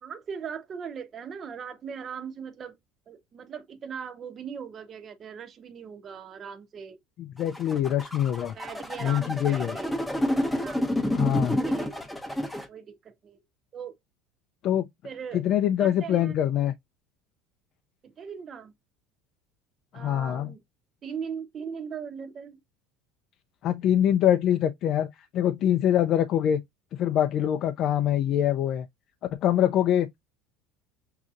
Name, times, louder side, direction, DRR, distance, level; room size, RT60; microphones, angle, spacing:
voice 1, 0.0-2.8 3.1-7.0 8.5-10.0 10.5-10.9 11.5-12.0 12.7-13.4 13.7-13.9 15.0-15.4 15.8-16.4 18.0-18.7 19.9-20.6 21.0-22.6, right 7 dB, 35° right, 0.9 m, -39 dB
voice 2, 7.2-8.6 9.0-9.8 11.2-11.6 14.6-14.8 15.3-16.7 19.9-20.5 23.6-26.6 26.9-28.9 29.3-30.2, left 10 dB, 50° left, 0.5 m, -24 dB
sound 1, 7.4-12.7, left 1 dB, 5° left, 0.9 m, -29 dB
6.4 x 2.8 x 2.4 m
supercardioid pair, 120°, 0 cm